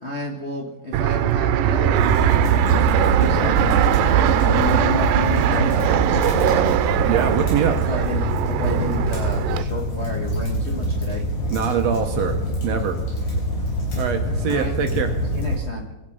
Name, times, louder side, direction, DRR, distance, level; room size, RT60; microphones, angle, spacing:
voice 1, 0.0-4.0 4.3-6.7 7.8-11.2 14.5-14.7 15.3-15.8, left 1 dB, 70° left, -1 dB, 0.6 m, -31 dB
Fixed-wing aircraft airplane, 0.9-9.6, right 11 dB, 90° right, 2.3 m, -20 dB
sound 1, 1.9-15.6, equal, 90° left, 6.1 m, -25 dB
voice 2, 7.0-7.8 11.5-13.0 14.0-15.1, right 8 dB, 70° right, 5 dB, 1.7 m, -23 dB
23.0 x 8.8 x 5.4 m, 1.1 s
omnidirectional pair, 3.9 m